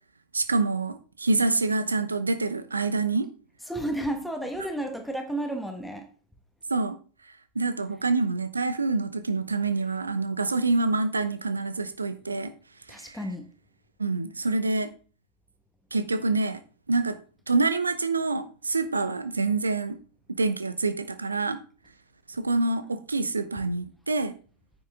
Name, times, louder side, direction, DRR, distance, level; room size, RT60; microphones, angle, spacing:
voice 1, 0.3-3.3 6.7-7.0 7.5-12.5 12.9-13.3 14.0-14.9 15.9-16.6 16.9-17.2 17.5-20.0 20.3-21.6 22.3-24.3, right 3 dB, 80° right, 0.9 m, -26 dB
voice 2, 3.7-6.1 12.9-13.5, right 1 dB, ahead, 1.3 m, -32 dB
9.5 x 7.2 x 3.6 m
figure-of-eight pair, 90°, 0 cm